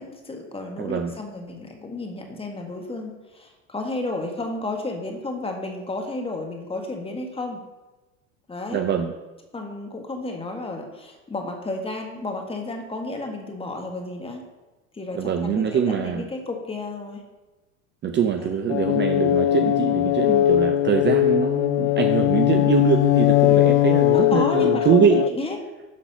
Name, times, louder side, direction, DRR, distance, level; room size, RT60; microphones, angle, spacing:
voice 1, 0.0-7.6 8.5-8.8 9.5-14.4 14.9-17.2 18.4-18.5 24.1-25.6, left 2 dB, 15° left, 3 dB, 1.7 m, -32 dB
voice 2, 0.8-1.1 8.7-9.1 15.1-16.3 18.0-25.3, right 7 dB, 25° right, 5 dB, 0.7 m, -23 dB
sound 1, 18.7-25.3, left 14 dB, 55° left, 0.4 m, -20 dB
11.5 x 4.0 x 5.6 m, 1.1 s
hypercardioid pair, 85°, 40 cm